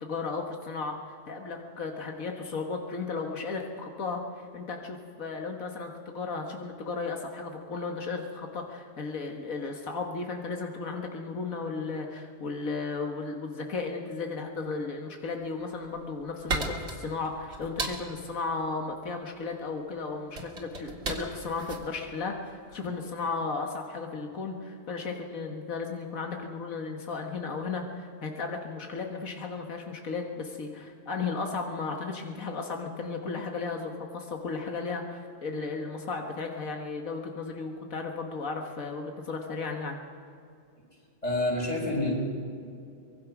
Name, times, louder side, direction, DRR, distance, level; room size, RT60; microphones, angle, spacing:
voice 1, 0.0-40.0, left 4 dB, 90° left, 2 dB, 1.9 m, -35 dB
sound 1, 15.6-23.0, right 3 dB, 80° right, 2.8 m, -37 dB
voice 2, 41.2-42.1, left 2 dB, 30° left, -2 dB, 6.3 m, -27 dB
24.0 x 22.5 x 6.1 m, 2.5 s
omnidirectional pair, 1.4 m